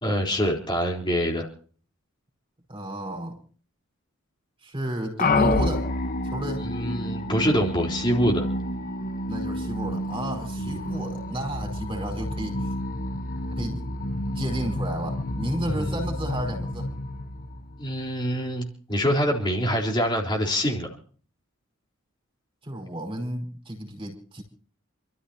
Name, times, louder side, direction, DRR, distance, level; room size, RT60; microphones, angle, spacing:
voice 1, 0.0-1.5 6.6-8.5 10.6-10.9 15.7-16.0 17.8-20.9, equal, 20° left, -1 dB, 4.0 m, -25 dB
voice 2, 2.7-3.4 4.6-5.9 6.3-6.6 9.3-12.7 13.6-13.9 14.3-16.9 22.6-24.4, right 1 dB, 25° right, 2 dB, 5.1 m, -32 dB
sound 1, 5.2-18.1, left 1 dB, 40° left, 1.1 m, -29 dB
28.5 x 13.5 x 2.9 m, 0.44 s
head